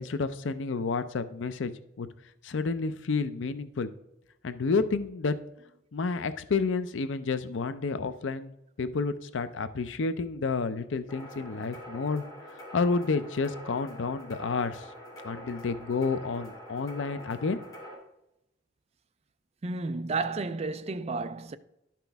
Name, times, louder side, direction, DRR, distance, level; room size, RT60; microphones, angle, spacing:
voice 1, 0.0-1.7 2.0-2.1 2.4-3.9 4.4-5.3 5.9-8.5 8.8-12.2 12.7-14.9 15.2-17.6, left 4 dB, 80° left, 0.5 m, -30 dB
sound 1, 11.1-17.9, equal, 20° left, 2.1 m, -45 dB
voice 2, 19.6-21.6, right 3 dB, 35° right, 0.4 m, -32 dB
11.5 x 5.9 x 3.4 m
head